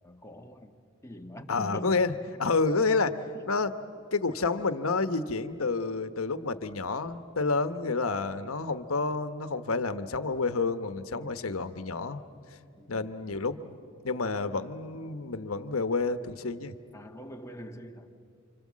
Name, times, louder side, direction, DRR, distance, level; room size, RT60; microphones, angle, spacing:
voice 1, 0.0-0.8 1.0-2.0 11.1-11.4 12.8-13.1 16.9-18.1, equal, 15° left, 1.4 m, -43 dB
voice 2, 1.5-2.1 2.4-3.2 3.5-3.7 4.1-12.2 12.9-13.8 14.0-16.7, left 3 dB, 90° left, 1.1 m, -29 dB
29.5 x 26.0 x 7.5 m
head